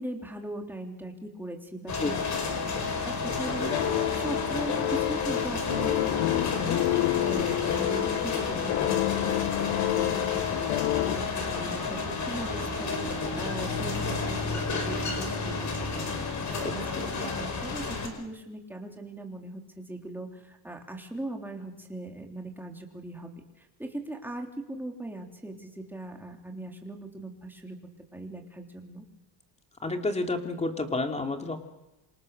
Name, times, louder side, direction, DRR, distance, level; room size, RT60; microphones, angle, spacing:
voice 1, 0.0-2.2 2.5-9.4 9.7-23.3 23.6-27.8 28.1-29.0, right 1 dB, 5° right, 2 dB, 3.4 m, -39 dB
sound 1, 1.9-18.1, left 4 dB, 35° left, 5.3 m, -31 dB
sound 2, 3.7-11.2, left 19 dB, 85° left, 0.9 m, -28 dB
voice 2, 16.6-17.0 29.8-31.6, left 2 dB, 15° left, 4 dB, 2.8 m, -30 dB
27.5 x 27.0 x 6.7 m, 1.0 s
cardioid pair, 150°, 50 cm